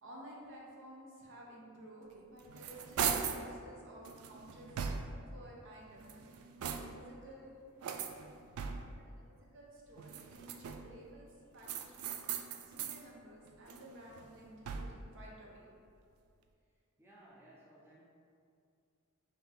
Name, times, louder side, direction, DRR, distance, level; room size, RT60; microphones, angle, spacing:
voice 1, 0.0-4.9 5.3-7.6 8.6-15.7, right 1 dB, 60° right, -3 dB, 0.9 m, -54 dB
sound 1, 2.1-3.5 4.0-5.3 5.9-7.1 7.8-9.1 10.0-11.0 11.6-13.0 13.5-15.1, right 7 dB, 85° right, 0.3 m, -40 dB
voice 2, 17.0-18.0, right 1 dB, 10° right, -6 dB, 0.6 m, -60 dB
5.6 x 2.7 x 3.4 m, 2.4 s
head